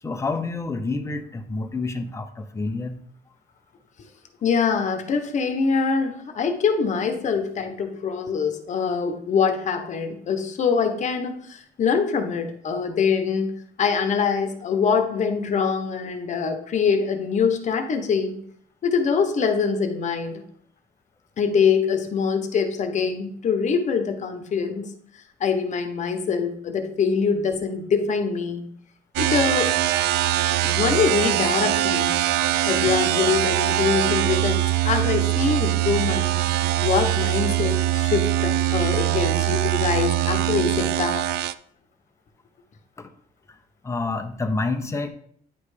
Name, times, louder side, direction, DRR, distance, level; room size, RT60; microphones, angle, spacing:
voice 1, 0.0-2.9 43.0-43.1 43.5-43.6 43.8-45.1, left 3 dB, 15° left, 6 dB, 0.8 m, -28 dB
voice 2, 4.4-13.5 13.8-18.3 18.8-20.4 21.4-24.9 25.4-28.6 29.2-29.7 30.6-32.2 32.7-36.4 36.8-41.2, left 5 dB, 45° left, 6 dB, 1.1 m, -24 dB
sound 1, 29.2-41.5, right 14 dB, 80° right, 0.4 m, -22 dB
9.6 x 3.3 x 4.9 m, 0.65 s
cardioid pair, 110°, 17 cm